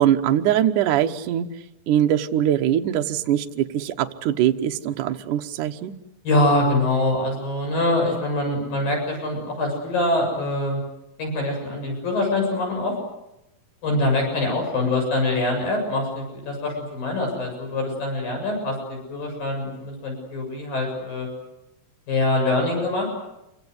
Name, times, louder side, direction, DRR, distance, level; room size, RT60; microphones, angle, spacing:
voice 1, 0.0-1.5 1.9-5.9, right 11 dB, 70° right, 5 dB, 2.5 m, -22 dB
voice 2, 6.2-10.8 11.2-12.9 13.8-21.3 22.1-23.1, left 2 dB, 75° left, 1 dB, 9.3 m, -24 dB
27.5 x 24.5 x 8.1 m, 0.91 s
omnidirectional pair, 4.1 m